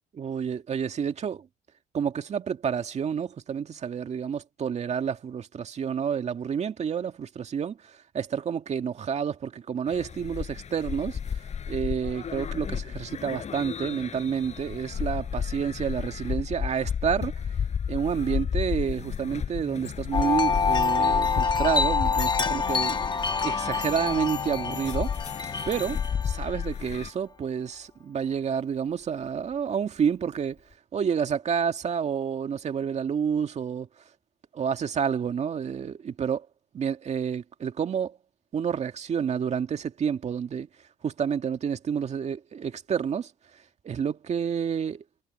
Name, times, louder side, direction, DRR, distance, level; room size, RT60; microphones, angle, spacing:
voice 1, 0.2-1.5 1.9-11.4 11.7-17.5 17.9-23.0 23.4-25.1 25.7-26.0 26.2-30.6 30.9-33.9 34.5-36.5 36.7-38.2 38.5-40.7 41.0-43.3 43.8-45.0, right 7 dB, 40° right, 2.1 m, -29 dB
sound 1, 9.9-27.1, left 7 dB, 40° left, 5.4 m, -33 dB
Wind chime, 20.1-26.6, left 5 dB, 25° left, 1.5 m, -27 dB
cardioid pair, 110°, 17 cm